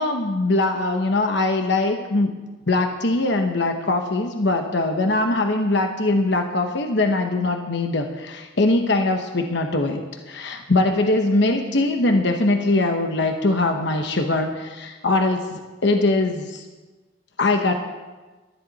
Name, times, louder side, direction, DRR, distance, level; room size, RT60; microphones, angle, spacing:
voice 1, 0.0-2.3 2.7-16.6 17.4-17.7, left 2 dB, 65° left, 5 dB, 1.1 m, -22 dB
18.5 x 13.5 x 4.1 m, 1.2 s
head